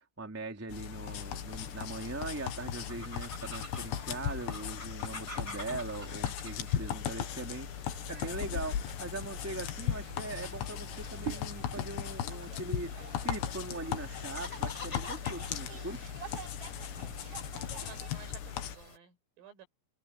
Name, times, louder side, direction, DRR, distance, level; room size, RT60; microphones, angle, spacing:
voice 1, 0.0-16.1, right 2 dB, 5° right, 1.0 m, -41 dB
sound 1, 0.7-18.8, left 10 dB, 70° left, 3.5 m, -37 dB
sound 2, 1.1-19.0, left 2 dB, 15° left, 4.4 m, -50 dB
sound 3, 7.9-18.1, right 5 dB, 30° right, 6.2 m, -48 dB
voice 2, 17.8-19.7, right 7 dB, 80° right, 8.4 m, -53 dB
omnidirectional pair, 5.8 m